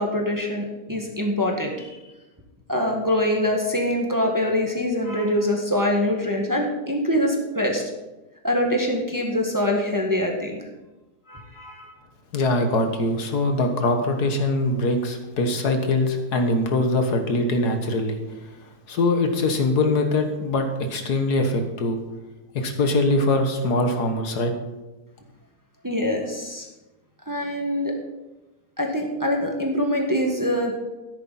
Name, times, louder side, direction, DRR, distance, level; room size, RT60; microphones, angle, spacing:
voice 1, 0.0-2.0 2.7-7.8 8.4-10.6 11.3-11.9 25.8-26.7 27.3-27.9 28.8-30.7, left 1 dB, 10° right, 1 dB, 1.5 m, -24 dB
voice 2, 12.3-18.2 18.9-22.0 22.6-24.5, left 2 dB, 75° left, 5 dB, 1.8 m, -22 dB
13.0 x 10.5 x 4.2 m, 1.1 s
omnidirectional pair, 1.7 m